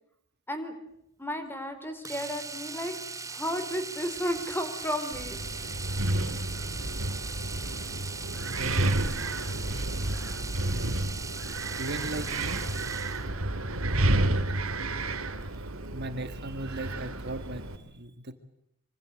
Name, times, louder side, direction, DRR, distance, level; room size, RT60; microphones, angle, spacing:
voice 1, 1.2-2.9 3.3-5.7, equal, 10° left, 8 dB, 4.0 m, -33 dB
Domestic sounds home sounds, 2.0-13.3 15.4-15.6 15.8-15.9, right 4 dB, 15° right, 1.1 m, -39 dB
Wind, 5.1-17.8, right 1 dB, 75° right, 2.7 m, -31 dB
voice 2, 8.6-8.9 11.8-12.6 15.9-18.3, right 2 dB, 55° right, 9 dB, 2.0 m, -37 dB
25.5 x 25.5 x 7.9 m, 0.74 s
head